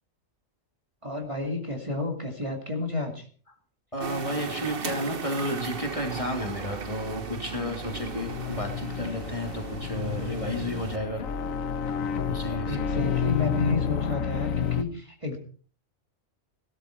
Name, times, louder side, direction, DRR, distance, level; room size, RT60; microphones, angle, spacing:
voice 1, 1.0-3.2 12.7-15.4, left 3 dB, 25° right, 1 dB, 2.3 m, -31 dB
voice 2, 3.9-11.2 12.2-13.0, equal, 25° left, 2 dB, 2.9 m, -32 dB
sound 1, 4.0-11.0, right 5 dB, 45° right, 1.3 m, -37 dB
sound 2, 7.4-14.8, left 7 dB, 90° left, 1.3 m, -30 dB
17.5 x 12.5 x 4.5 m, 0.42 s
omnidirectional pair, 1.4 m